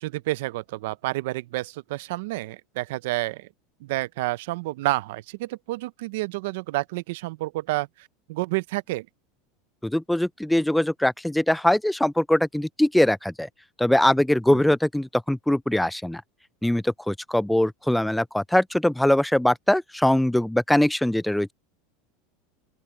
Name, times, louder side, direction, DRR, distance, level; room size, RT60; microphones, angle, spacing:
voice 1, 0.0-3.5 3.8-7.9 8.3-9.1 14.5-14.6, right 19 dB, 75° right, 0.8 m, -29 dB
voice 2, 9.8-13.5 13.8-16.2 16.6-21.5, left 1 dB, 5° left, 0.5 m, -22 dB
open air
supercardioid pair, 110°, 0 cm